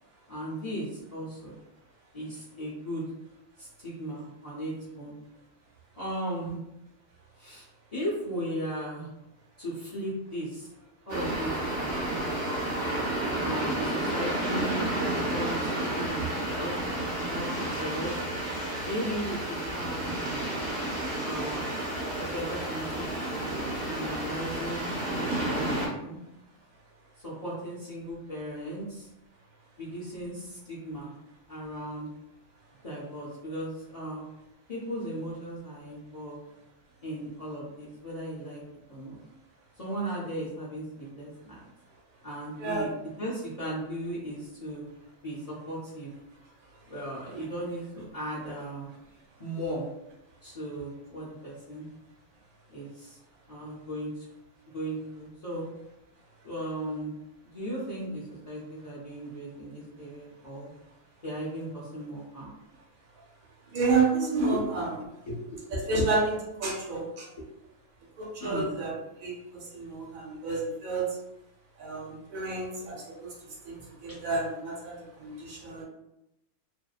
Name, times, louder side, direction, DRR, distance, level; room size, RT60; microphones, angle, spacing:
voice 1, 0.3-1.6 2.1-3.0 3.6-5.2 5.9-6.6 7.4-9.1 9.6-10.7 11.1-12.2 12.4-12.7 13.4-14.8 15.3-16.7 17.3-18.2 18.8-20.4 21.2-21.7 22.1-23.5 23.9-24.9 25.2-26.2 27.2-29.1 29.8-31.1 31.5-32.1 32.8-34.2 34.7-36.4 37.0-38.6 38.9-39.2 39.8-41.7 42.2-42.9 43.2-44.8 45.2-46.1 46.9-48.9 49.4-49.8 50.4-51.9 52.7-53.2 53.5-54.2 54.7-55.7 56.4-57.1 57.5-60.7 61.2-62.6 64.5-64.6 65.0-65.6 65.9-66.0 68.4-68.8 73.8-74.2, equal, 65° left, -9 dB, 0.3 m, -37 dB
sound 1, 11.1-25.9, right 1 dB, 35° right, 0.9 m, -31 dB
voice 2, 42.6-42.9 47.2-47.4 63.7-64.9 65.7-66.3 66.6-67.3 68.2-71.1 71.8-73.4 73.6-75.8, right 3 dB, 75° right, -2 dB, 1.1 m, -30 dB
2.5 x 2.1 x 2.3 m, 0.88 s
omnidirectional pair, 1.5 m